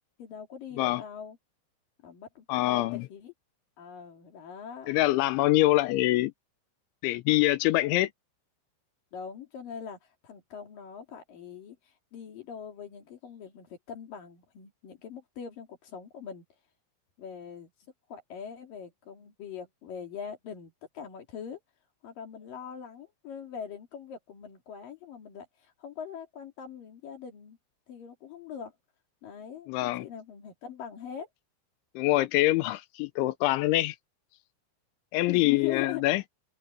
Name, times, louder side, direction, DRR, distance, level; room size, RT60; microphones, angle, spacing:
voice 1, 0.2-1.4 2.0-3.3 3.8-4.9 9.1-16.4 17.2-21.6 22.0-27.6 27.9-28.7 29.2-31.3 35.3-36.0, left 8 dB, 50° left, 3.8 m, -42 dB
voice 2, 2.5-3.1 4.9-6.3 7.0-8.1 29.7-30.1 32.0-34.0 35.1-36.2, left 17 dB, 80° left, 2.9 m, -25 dB
open air
omnidirectional pair, 5.9 m